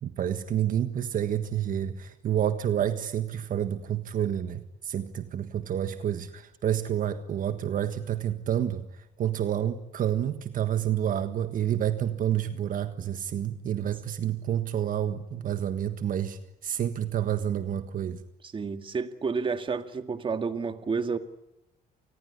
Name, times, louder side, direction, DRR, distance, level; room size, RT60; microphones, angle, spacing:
voice 1, 0.0-18.2, right 10 dB, 55° right, 9 dB, 1.6 m, -29 dB
voice 2, 18.4-21.2, right 5 dB, 30° right, 9 dB, 2.0 m, -30 dB
28.5 x 20.0 x 9.9 m, 0.87 s
cardioid pair, 110°, 17 cm